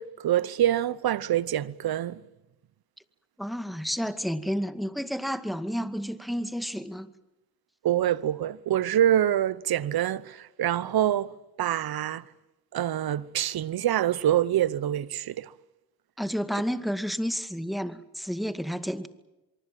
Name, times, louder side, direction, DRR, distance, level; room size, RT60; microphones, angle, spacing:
voice 1, 0.0-2.2 7.8-12.3 12.7-15.5, right 11 dB, 65° right, 1.0 m, -26 dB
voice 2, 3.4-7.1 16.2-19.1, equal, ahead, 2.1 m, -31 dB
24.5 x 24.0 x 7.6 m
supercardioid pair, 50°, 39 cm